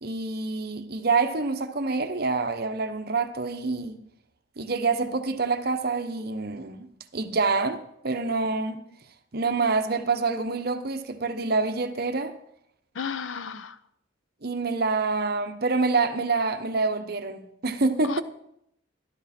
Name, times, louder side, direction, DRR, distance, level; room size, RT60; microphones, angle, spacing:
voice 1, 0.0-4.0 4.6-6.9 7.1-8.8 9.3-12.3 14.4-18.2, right 3 dB, 50° right, 0.9 m, -26 dB
voice 2, 12.9-13.8 18.0-18.2, left 6 dB, 80° left, 0.6 m, -33 dB
13.0 x 12.5 x 4.3 m
head